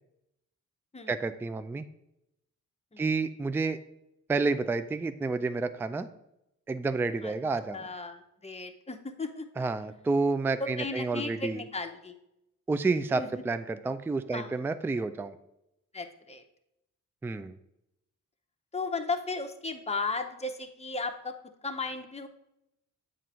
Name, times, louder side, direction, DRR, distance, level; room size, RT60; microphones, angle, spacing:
voice 1, 1.1-1.8 3.0-3.8 4.3-6.1 6.7-7.8 9.6-11.6 12.7-15.3 17.2-17.5, right 3 dB, 5° right, 11 dB, 0.3 m, -30 dB
voice 2, 7.7-9.5 10.6-12.2 13.2-13.6 14.3-14.5 15.9-16.4 18.7-21.4 21.6-22.3, left 3 dB, 20° left, 6 dB, 0.8 m, -35 dB
7.5 x 2.5 x 5.5 m, 0.84 s
cardioid pair, 55°, 32 cm